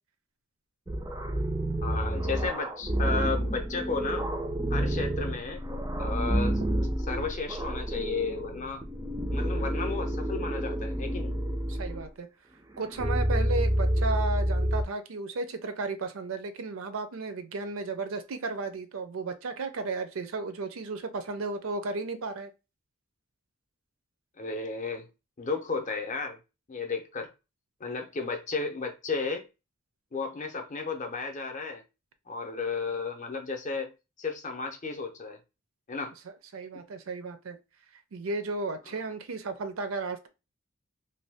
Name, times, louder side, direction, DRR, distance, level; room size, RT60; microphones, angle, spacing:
sound 1, 0.9-12.1 12.7-14.8, right 1 dB, 15° right, 0.3 m, -29 dB
voice 1, 1.8-4.3 4.7-5.6 6.0-6.6 7.1-8.8 9.3-11.3 24.4-25.1 25.4-26.4 26.7-27.3 27.8-29.5 30.1-31.8 32.3-33.9 34.2-35.4 35.9-36.1, left 4 dB, 35° left, 0.6 m, -33 dB
voice 2, 11.7-12.3 12.8-22.5 36.5-37.6 38.1-40.3, right 3 dB, 70° right, 0.5 m, -34 dB
2.6 x 2.2 x 3.4 m
head